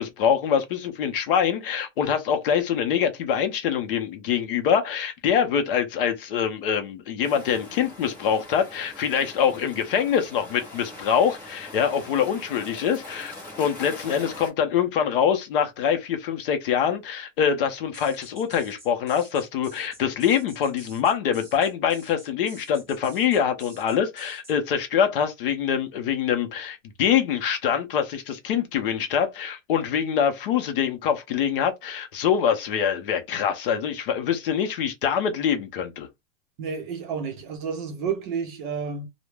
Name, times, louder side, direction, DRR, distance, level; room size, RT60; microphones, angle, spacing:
voice 1, 0.0-13.3 13.6-36.1, left 8 dB, 45° left, 0.5 m, -24 dB
sound 1, 7.2-14.5, left 1 dB, 5° left, 0.6 m, -42 dB
sound 2, 17.9-24.6, right 2 dB, 15° right, 1.1 m, -48 dB
voice 2, 36.6-39.1, right 6 dB, 40° right, 0.6 m, -30 dB
2.2 x 2.0 x 3.1 m
supercardioid pair, 170°, 40 cm